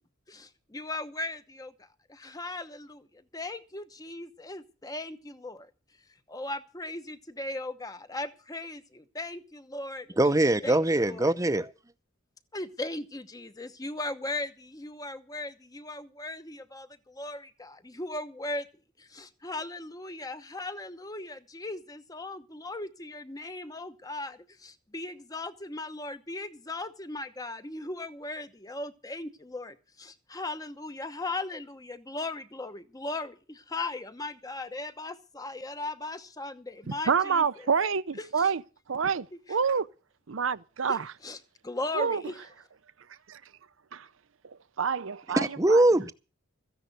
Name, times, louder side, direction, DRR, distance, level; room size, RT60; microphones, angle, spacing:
voice 1, 0.3-5.7 6.3-10.2 10.6-11.3 12.5-18.7 19.0-37.7 38.2-38.5 39.5-39.6 40.9-41.4 41.6-42.5, left 2 dB, 20° left, 0.9 m, -38 dB
voice 2, 10.2-11.7 45.4-46.1, right 1 dB, 15° right, 0.7 m, -22 dB
voice 3, 36.9-38.6 38.9-39.9 40.3-41.1 41.9-42.2 43.3-43.4 43.9-44.1 44.8-45.9, right 6 dB, 75° right, 0.7 m, -28 dB
14.5 x 10.5 x 6.7 m
head